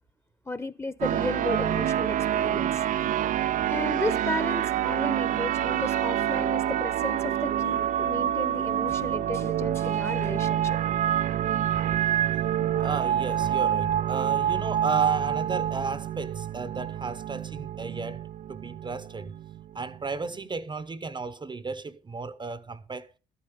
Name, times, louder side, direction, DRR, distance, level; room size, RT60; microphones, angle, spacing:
voice 1, 0.5-2.8 3.7-10.8 11.7-11.8, left 2 dB, 15° left, 1.1 m, -34 dB
sound 1, 1.0-20.4, right 11 dB, 55° right, 0.5 m, -27 dB
voice 2, 12.8-18.2 18.5-19.3 19.7-23.1, right 4 dB, 30° right, 0.9 m, -34 dB
13.0 x 8.7 x 5.1 m
hypercardioid pair, 50°, 16 cm